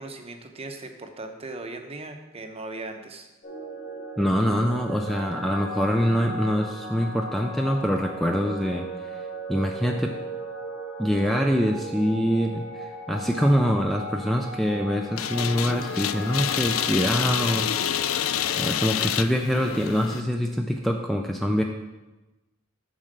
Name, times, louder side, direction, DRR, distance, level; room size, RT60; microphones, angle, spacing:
voice 1, 0.0-3.3, right 2 dB, 30° right, 5 dB, 0.7 m, -38 dB
sound 1, 3.4-18.7, right 1 dB, 55° left, 2.8 m, -37 dB
voice 2, 4.2-9.2 9.5-10.1 11.0-17.7 18.6-21.6, equal, ahead, 2 dB, 0.4 m, -24 dB
sound 2, 15.2-20.2, left 10 dB, 85° left, 0.4 m, -28 dB
7.4 x 4.3 x 6.6 m, 1.1 s
head